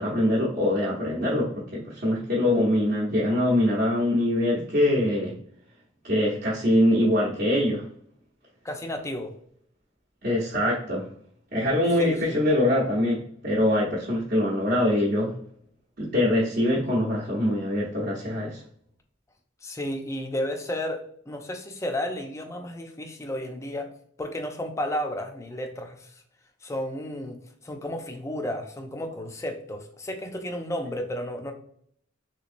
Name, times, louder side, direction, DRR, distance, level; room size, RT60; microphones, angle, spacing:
voice 1, 0.0-5.3 6.0-7.8 10.2-11.0 11.5-15.3 16.0-18.6, left 1 dB, 55° right, -6 dB, 0.8 m, -23 dB
voice 2, 8.6-9.3 12.0-12.4 19.6-23.9 24.2-26.2 26.6-27.4 27.6-31.5, left 1 dB, 15° left, 5 dB, 0.4 m, -32 dB
3.5 x 3.0 x 2.5 m, 0.62 s
head